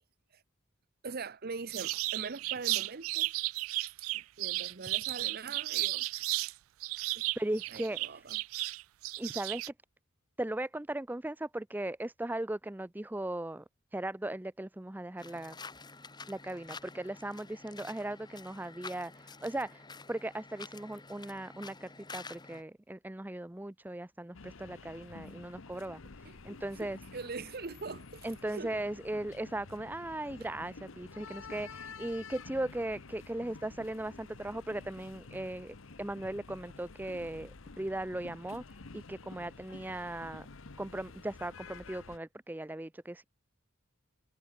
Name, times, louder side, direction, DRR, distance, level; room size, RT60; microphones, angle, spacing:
voice 1, 1.0-3.3 4.1-6.1 6.5-6.6 6.9-7.2 7.7-8.4 26.2-28.8, right 4 dB, 50° right, 0.8 m, -43 dB
sound 1, 1.7-6.5 6.8-9.7, right 20 dB, 85° right, 0.3 m, -34 dB
voice 2, 7.4-8.3 9.2-9.6 10.4-13.6 13.9-15.6 16.3-27.0 28.2-40.5 40.8-43.2, right 1 dB, 10° right, 0.5 m, -38 dB
sound 2, 15.2-22.6, left 4 dB, 20° left, 2.2 m, -49 dB
sound 3, 24.3-42.2, left 4 dB, 70° left, 1.0 m, -50 dB
head